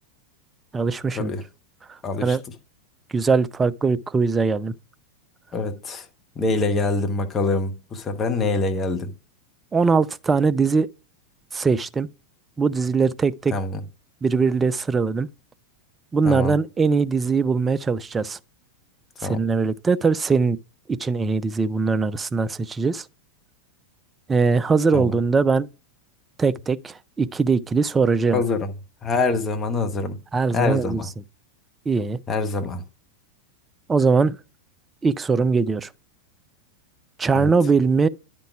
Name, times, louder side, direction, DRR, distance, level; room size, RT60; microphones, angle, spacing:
voice 1, 0.7-1.3 2.2-2.4 3.1-4.7 9.7-10.9 11.5-12.1 12.6-13.5 14.2-15.3 16.1-18.4 19.2-20.6 20.9-23.0 24.3-25.7 26.4-28.4 30.3-31.0 31.9-32.2 33.9-34.4 35.0-35.9 37.2-38.1, right 4 dB, 15° right, 0.4 m, -21 dB
voice 2, 2.0-2.4 5.5-6.1 6.4-9.1 13.5-13.8 16.2-16.6 19.2-19.4 24.9-25.1 28.3-28.7 29.0-30.2 30.5-31.1 32.3-32.8 37.3-37.5, left 3 dB, 20° left, 1.0 m, -25 dB
10.0 x 3.7 x 4.8 m
figure-of-eight pair, 90°, 0 cm